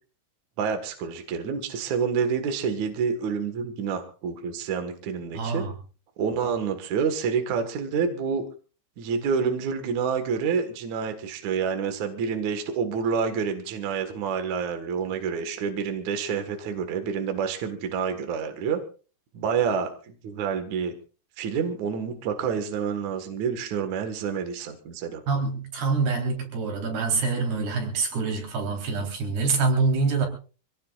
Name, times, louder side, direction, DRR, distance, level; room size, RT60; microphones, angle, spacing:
voice 1, 0.6-5.7 6.2-8.4 9.0-18.8 19.3-20.9 21.4-25.2, right 6 dB, 55° right, 6 dB, 2.6 m, -28 dB
voice 2, 5.3-5.7 25.3-30.3, right 4 dB, 75° right, 2 dB, 5.7 m, -25 dB
26.0 x 17.5 x 2.4 m, 0.37 s
omnidirectional pair, 4.6 m